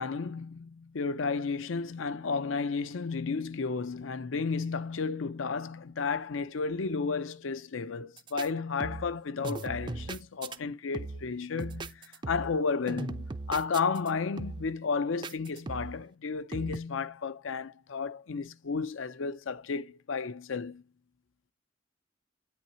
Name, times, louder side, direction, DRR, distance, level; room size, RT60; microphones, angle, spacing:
voice 1, 0.0-20.8, left 4 dB, 85° left, 0.6 m, -33 dB
sound 1, 8.2-8.5 8.8-9.2 9.4-10.6 10.9-11.3 11.6-12.6 12.9-14.1 14.4-14.8 15.2-16.0 16.5-16.8, right 3 dB, 25° right, 0.4 m, -39 dB
8.8 x 6.0 x 2.7 m
head